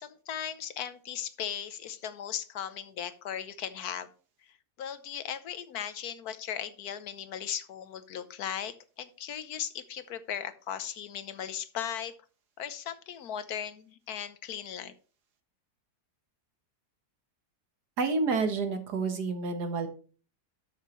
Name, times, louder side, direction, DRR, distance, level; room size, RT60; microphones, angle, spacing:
voice 1, 0.0-4.1 4.4-12.1 12.6-14.9, left 9 dB, 75° left, 12 dB, 1.3 m, -37 dB
voice 2, 18.0-19.9, right 4 dB, 85° right, 7 dB, 1.9 m, -29 dB
12.5 x 6.5 x 3.1 m, 0.37 s
omnidirectional pair, 1.7 m